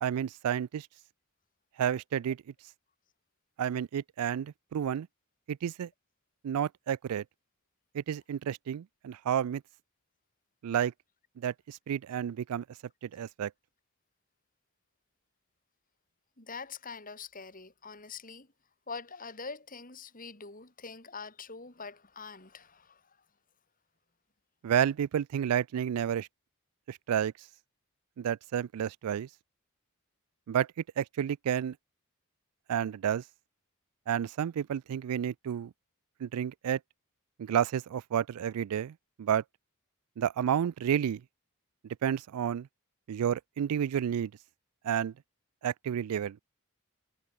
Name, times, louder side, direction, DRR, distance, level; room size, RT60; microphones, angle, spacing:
voice 1, 0.0-0.9 1.8-2.4 3.6-5.1 5.5-5.9 6.4-7.2 7.9-9.6 10.6-10.9 11.4-12.6 13.0-13.5 24.6-26.3 26.9-27.3 28.2-29.3 30.5-30.7 31.0-31.8 32.7-33.2 34.1-35.7 36.2-36.8 37.4-39.4 40.2-41.2 42.0-42.7 43.1-44.3 44.8-45.1 45.6-46.4, right 9 dB, 90° right, 0.3 m, -30 dB
voice 2, 16.4-18.5 18.9-23.2, left 4 dB, 40° left, 4.2 m, -44 dB
head